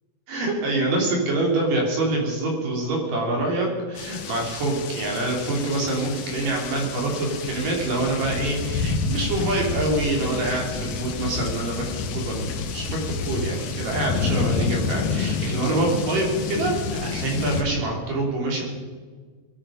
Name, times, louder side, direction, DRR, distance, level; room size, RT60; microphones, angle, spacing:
voice 1, 0.3-11.8 12.1-18.6, right 2 dB, 70° right, -1 dB, 4.9 m, -25 dB
sound 1, 4.0-17.6, left 5 dB, 75° left, 2.8 m, -29 dB
21.5 x 12.5 x 5.1 m, 1.5 s
omnidirectional pair, 4.0 m